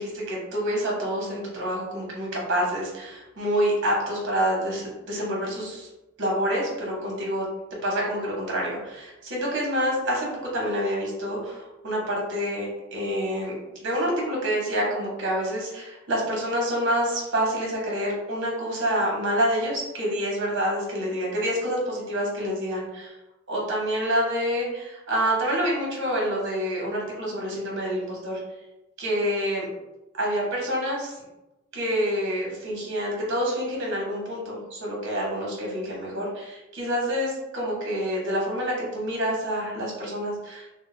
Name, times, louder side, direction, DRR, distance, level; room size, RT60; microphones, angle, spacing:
voice 1, 0.0-5.9 6.2-7.5 7.8-10.3 10.5-23.1 23.5-28.4 29.0-29.7 30.1-31.1 31.7-40.7, equal, 60° right, -3 dB, 0.9 m, -27 dB
2.2 x 2.0 x 3.0 m, 0.98 s
head